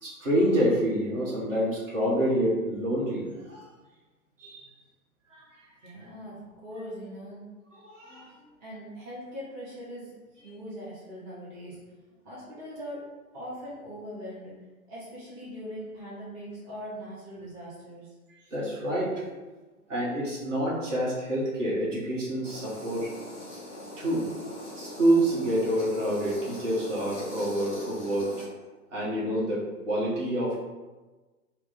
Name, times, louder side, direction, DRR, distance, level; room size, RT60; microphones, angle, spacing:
voice 1, 0.0-3.6 4.4-4.6 5.3-5.4 7.8-8.3 18.5-19.2 19.9-23.1 24.0-24.3 24.8-28.3 28.9-30.6, right 1 dB, 55° right, -6 dB, 1.3 m, -27 dB
voice 2, 5.8-7.4 8.6-10.1 10.4-11.8 12.2-13.0 13.3-14.5 14.9-18.1, equal, 25° right, -8 dB, 1.0 m, -41 dB
sound 1, 22.4-28.4, left 1 dB, 5° left, 0.4 m, -41 dB
3.0 x 2.1 x 4.1 m, 1.2 s
figure-of-eight pair, 115°, 44 cm